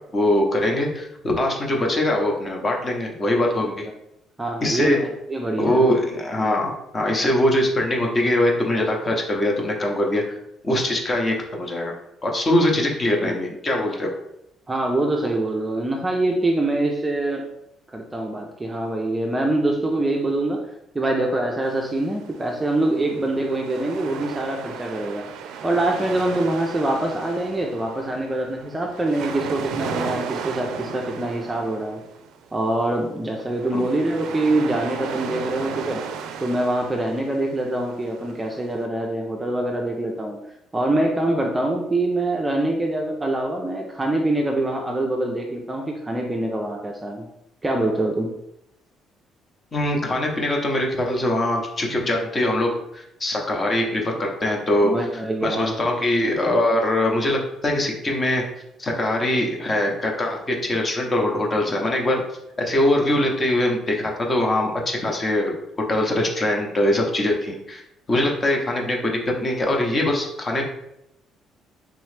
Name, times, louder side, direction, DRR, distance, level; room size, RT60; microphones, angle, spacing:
voice 1, 0.1-3.9 4.6-5.0 5.6-10.4 10.6-11.9 12.2-14.1 33.7-33.9 49.7-54.9 55.4-58.5 58.8-62.2 62.6-65.5 65.8-67.8 68.1-70.7, left 1 dB, 25° left, 0 dB, 0.8 m, -22 dB
voice 2, 4.4-5.8 13.2-13.4 14.7-17.4 17.9-20.6 20.9-25.2 25.6-32.0 32.5-36.0 36.4-40.4 40.7-47.2 47.6-48.3 54.8-55.7, right 2 dB, 15° right, 1 dB, 0.5 m, -24 dB
sound 1, 21.6-38.9, right 7 dB, 80° right, 0.4 m, -35 dB
3.6 x 3.0 x 3.2 m, 0.82 s
cardioid pair, 130°, 0 cm